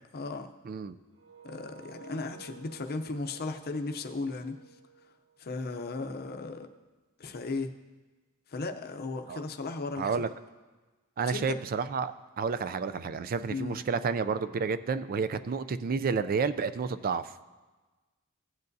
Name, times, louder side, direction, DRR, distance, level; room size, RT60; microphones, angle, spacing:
voice 1, 0.1-0.5 1.4-4.6 5.4-6.7 7.2-7.7 8.5-10.3 11.3-11.6 13.5-13.8, left 3 dB, 45° left, 6 dB, 0.6 m, -36 dB
sound 1, 1.1-6.0, right 6 dB, 65° right, 1.3 m, -53 dB
voice 2, 10.0-10.3 11.2-17.2, right 5 dB, 40° right, 14 dB, 0.4 m, -30 dB
16.0 x 8.1 x 2.7 m, 1.3 s
head